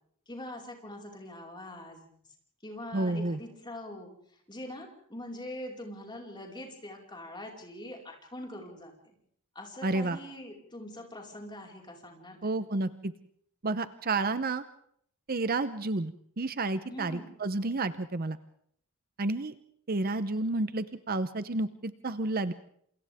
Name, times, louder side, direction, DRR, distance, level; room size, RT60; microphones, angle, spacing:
voice 1, 0.3-2.1 2.6-4.1 4.5-8.9 9.5-12.6 16.9-17.3, left 1 dB, 20° left, 0 dB, 4.9 m, -43 dB
voice 2, 2.9-3.4 9.8-10.2 12.4-13.1 13.6-14.6 15.3-18.4 19.2-19.5 19.9-22.5, right 2 dB, 45° right, 13 dB, 0.8 m, -30 dB
29.0 x 27.5 x 3.6 m, 0.66 s
head